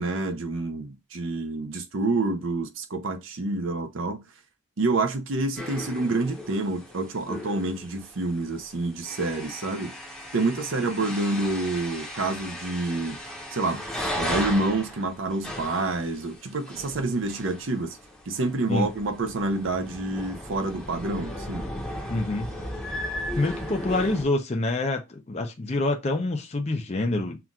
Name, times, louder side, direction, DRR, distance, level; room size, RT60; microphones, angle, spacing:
voice 1, 0.0-4.2 4.8-9.9 10.3-13.2 13.5-13.8 14.2-18.0 18.3-21.7, right 2 dB, 60° right, 0.7 m, -28 dB
sound 1, 5.6-24.2, left 1 dB, ahead, 0.8 m, -36 dB
voice 2, 22.1-22.5 23.4-27.4, left 2 dB, 30° left, 0.5 m, -26 dB
5.7 x 2.5 x 2.3 m
head